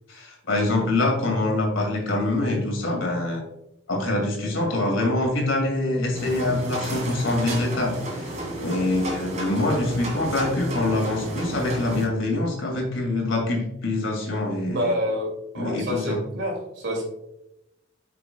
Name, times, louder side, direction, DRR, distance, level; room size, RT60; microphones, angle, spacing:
voice 1, 0.1-3.4 3.9-8.0 8.6-14.9 15.6-16.2, left 2 dB, 75° left, 1 dB, 2.4 m, -25 dB
sound 1, 6.1-12.1, right 1 dB, 35° right, 2.1 m, -32 dB
voice 2, 14.7-17.0, equal, 60° right, 0 dB, 2.4 m, -27 dB
9.3 x 5.9 x 2.2 m, 0.87 s
head